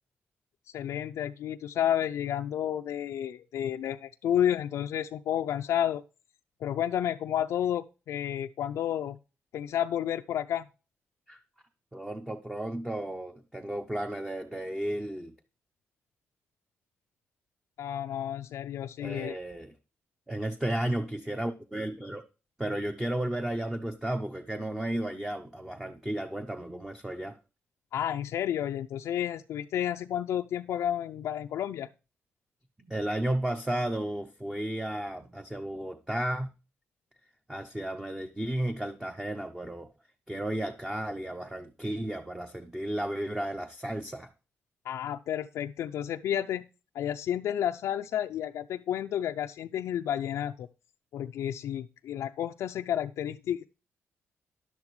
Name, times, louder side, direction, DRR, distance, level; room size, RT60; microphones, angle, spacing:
voice 1, 0.7-6.0 6.6-9.2 9.5-10.7 17.8-19.4 27.9-31.9 44.8-46.6 46.9-50.7 51.1-53.6, left 10 dB, 85° left, 5 dB, 0.5 m, -31 dB
voice 2, 11.9-15.3 19.0-19.7 20.3-22.2 22.6-27.4 32.9-36.5 37.5-39.9 40.3-44.3, right 1 dB, 10° right, 6 dB, 0.7 m, -33 dB
11.0 x 11.0 x 3.2 m, 0.31 s
cardioid pair, 140°, 5 cm